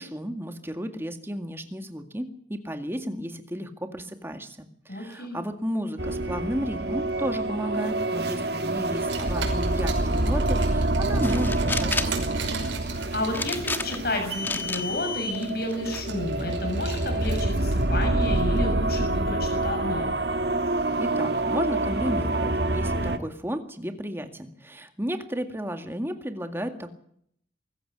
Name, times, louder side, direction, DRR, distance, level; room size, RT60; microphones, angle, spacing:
voice 1, 0.0-12.3 21.0-26.9, equal, 10° right, 7 dB, 2.0 m, -33 dB
voice 2, 4.9-5.4 13.1-20.1, left 1 dB, 55° left, 5 dB, 6.5 m, -31 dB
sound 1, 6.0-23.2, right 2 dB, 55° right, 1.6 m, -27 dB
Car, 8.9-18.4, right 2 dB, 85° right, 5.7 m, -37 dB
sound 2, 11.2-12.2 13.3-14.1 14.4-14.8 15.3-16.0, left 3 dB, 10° left, 1.2 m, -31 dB
23.5 x 14.5 x 8.2 m, 0.67 s
head